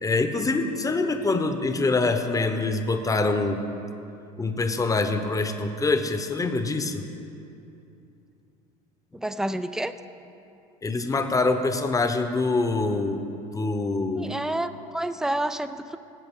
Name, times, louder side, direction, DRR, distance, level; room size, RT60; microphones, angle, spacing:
voice 1, 0.0-3.6 4.4-7.0 10.8-13.2 13.5-14.4, left 3 dB, 15° left, 7 dB, 0.9 m, -25 dB
voice 2, 9.1-9.9 14.2-16.0, right 1 dB, 5° right, 11 dB, 0.4 m, -29 dB
18.0 x 7.7 x 3.7 m, 2.7 s
hypercardioid pair, 80°, 19 cm